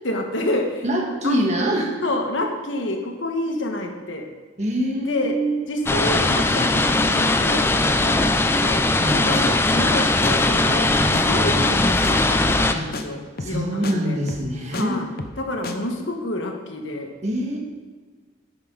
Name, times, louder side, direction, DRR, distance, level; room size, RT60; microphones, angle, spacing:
voice 1, 0.0-0.8 1.2-1.4 2.0-4.3 5.0-5.4 5.7-8.8 9.1-14.2 14.7-15.1 15.4-17.1, left 1 dB, 80° left, 3 dB, 1.4 m, -28 dB
voice 2, 0.8-1.9 4.6-5.7 9.0-9.2 11.0-11.3 12.7-12.9 13.4-15.0 17.2-17.6, right 1 dB, 35° right, 0 dB, 1.6 m, -24 dB
sound 1, 5.9-12.7, left 2 dB, 10° left, 0.4 m, -19 dB
sound 2, 8.9-9.1 9.3-9.4 9.8-10.0 10.2-10.3 10.7-10.9 11.1-11.2 11.6-11.8 12.0-12.1 12.5-12.7 12.9-13.0 13.4-13.6 13.8-13.9 14.3-14.8 15.2-15.4 15.6-15.8, left 2 dB, 50° left, 0.7 m, -32 dB
10.5 x 8.9 x 3.9 m, 1.4 s
head